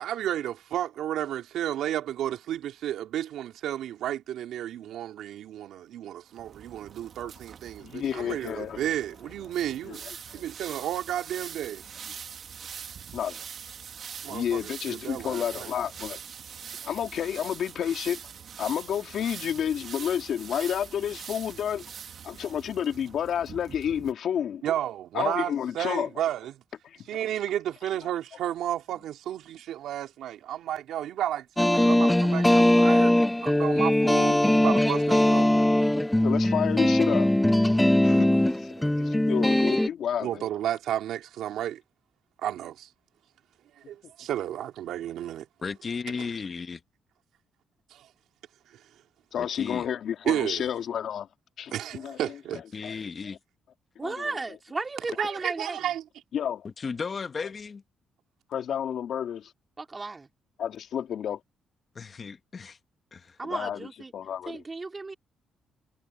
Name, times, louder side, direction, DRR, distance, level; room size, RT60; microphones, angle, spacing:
voice 1, 0.0-11.8 14.2-15.7 24.6-26.6 27.1-33.1 33.4-35.7 38.0-38.4 38.8-39.1 39.6-39.7 40.2-41.8 42.4-42.9 43.9-45.5 47.9-48.1 50.2-50.7 51.7-52.6 55.2-56.0, right 11 dB, 80° right, 2.9 m, -32 dB
sound 1, 6.3-24.1, right 7 dB, 55° right, 1.7 m, -43 dB
voice 2, 7.8-8.8 9.8-10.4 13.1-13.4 14.3-16.2 16.8-18.2 18.6-21.8 22.2-24.6 25.1-26.1 26.8-27.0 36.2-37.3 38.0-40.4 49.3-51.3 51.6-52.2 52.8-52.9 54.0-54.3 56.3-56.7 57.4-57.5 58.5-59.5 60.6-61.4 63.4-63.9 64.1-64.6, left 9 dB, 65° left, 2.5 m, -30 dB
sound 2, 31.6-39.9, left 1 dB, 5° left, 0.4 m, -21 dB
voice 3, 45.6-46.8 49.3-49.9 52.5-53.4 56.6-57.8 61.9-62.8 63.1-63.4, left 5 dB, 40° left, 1.4 m, -35 dB
voice 4, 54.0-55.8 59.8-60.3 63.4-64.1 64.5-65.1, right 3 dB, 25° right, 3.4 m, -34 dB
cardioid pair, 90°, 0 cm